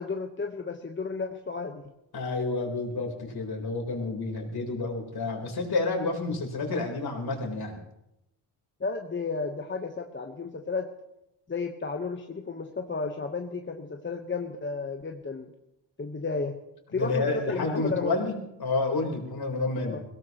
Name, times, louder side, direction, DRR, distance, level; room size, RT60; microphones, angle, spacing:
voice 1, 0.0-1.9 8.8-10.9 11.5-15.5 16.0-16.6 16.9-18.2 19.8-20.0, left 4 dB, 25° left, 3 dB, 1.2 m, -33 dB
voice 2, 2.1-7.8 16.9-18.3 18.6-20.0, left 3 dB, 45° left, 2 dB, 4.1 m, -29 dB
22.0 x 17.0 x 3.1 m, 0.87 s
cardioid pair, 75°, 50 cm